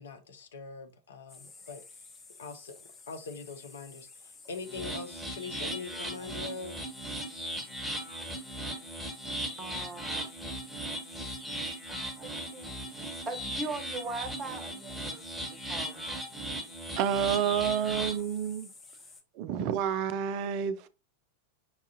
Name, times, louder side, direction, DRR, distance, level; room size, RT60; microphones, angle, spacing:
voice 1, 0.0-1.8 2.4-2.7 3.1-6.7, left 4 dB, 65° left, 0.6 m, -42 dB
sound 1, 1.3-19.2, left 4 dB, 20° left, 0.7 m, -52 dB
sound 2, 4.7-18.2, right 1 dB, ahead, 1.3 m, -38 dB
voice 2, 9.6-10.1 11.9-15.2 15.5-16.2, right 3 dB, 25° right, 0.7 m, -40 dB
voice 3, 17.0-18.7 19.4-20.9, right 8 dB, 45° right, 0.3 m, -29 dB
5.4 x 2.4 x 2.7 m
figure-of-eight pair, 90°, 0 cm